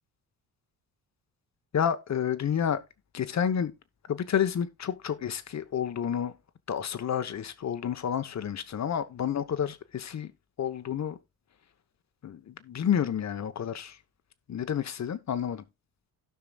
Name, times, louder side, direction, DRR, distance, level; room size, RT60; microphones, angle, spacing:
voice 1, 1.7-2.8 3.1-3.7 4.1-6.3 6.7-10.3 10.6-11.2 12.2-14.0 14.5-15.7, left 8 dB, 45° left, 1.0 m, -30 dB
17.5 x 5.8 x 2.3 m
cardioid pair, 90°, 39 cm